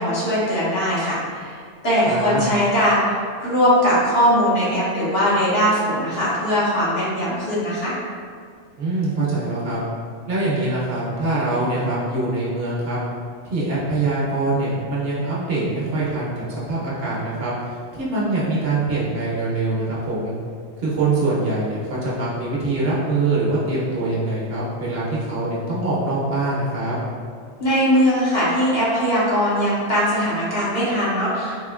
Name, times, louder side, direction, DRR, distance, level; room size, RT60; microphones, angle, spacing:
voice 1, 0.0-1.6 1.8-3.0 3.4-7.9 27.6-31.6, equal, 60° left, -9 dB, 1.2 m, -20 dB
voice 2, 2.1-2.4 8.8-9.8 10.3-13.0 13.4-17.5 17.9-20.3 20.8-27.0, right 2 dB, 60° right, -6 dB, 0.9 m, -23 dB
3.6 x 2.6 x 2.4 m, 2.1 s
omnidirectional pair, 1.2 m